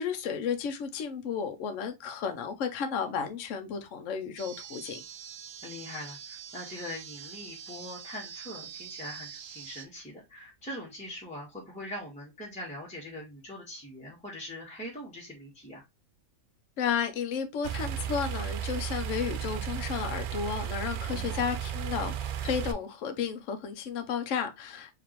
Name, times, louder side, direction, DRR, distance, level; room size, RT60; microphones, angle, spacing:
voice 1, 0.0-5.0 16.8-24.9, left 7 dB, 60° left, 1.0 m, -33 dB
sound 1, 4.4-9.9, right 8 dB, 60° right, 0.6 m, -45 dB
voice 2, 5.6-15.8 21.1-21.5, left 1 dB, 5° left, 1.2 m, -42 dB
sound 2, 17.6-22.7, right 10 dB, 80° right, 1.1 m, -34 dB
4.9 x 2.9 x 2.9 m
omnidirectional pair, 1.5 m